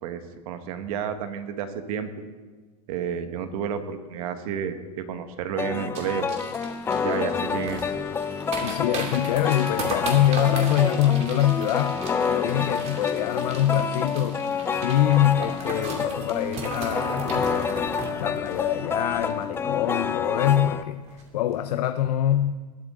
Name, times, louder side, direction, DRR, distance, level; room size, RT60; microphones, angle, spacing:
voice 1, 0.0-2.1 2.9-6.3 7.0-7.8, right 8 dB, 60° right, 8 dB, 1.5 m, -31 dB
sound 1, 5.6-20.8, left 6 dB, 10° left, 0.4 m, -28 dB
sound 2, 5.9-19.7 20.0-20.1 20.4-20.7 21.1-21.2, right 3 dB, 30° right, 2.4 m, -37 dB
voice 2, 8.6-12.0 12.3-14.4 14.8-17.8 18.2-21.0 21.3-22.6, left 11 dB, 70° left, 9 dB, 0.7 m, -24 dB
20.5 x 8.4 x 3.8 m, 1.3 s
supercardioid pair, 130°, 21 cm